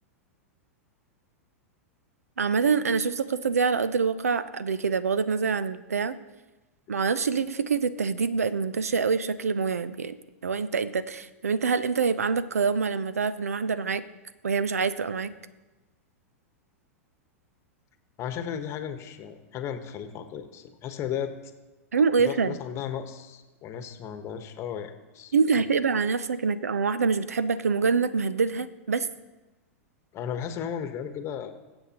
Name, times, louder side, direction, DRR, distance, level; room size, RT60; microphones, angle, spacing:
voice 1, 2.4-6.2 6.9-10.2 10.4-14.0 14.4-15.3 21.9-22.6 25.3-29.1, right 5 dB, 85° right, 15 dB, 0.5 m, -25 dB
voice 2, 18.2-21.5 22.2-25.6 30.1-31.5, left 8 dB, 35° left, 8 dB, 1.1 m, -35 dB
20.0 x 7.9 x 2.9 m, 1.1 s
hypercardioid pair, 105°, 8 cm